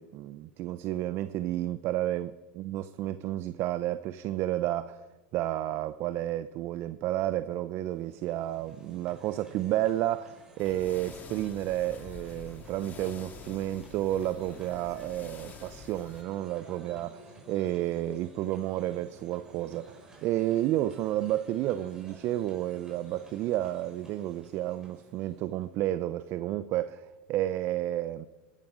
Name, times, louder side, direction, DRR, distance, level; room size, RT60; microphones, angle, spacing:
voice 1, 0.0-5.0 5.3-28.3, right 14 dB, 50° right, 0.6 m, -31 dB
sound 1, 7.7-25.8, right 2 dB, 10° right, 5.4 m, -54 dB
sound 2, 10.6-16.2, left 5 dB, 35° left, 1.9 m, -47 dB
19.5 x 11.5 x 5.1 m
hypercardioid pair, 105°, 5 cm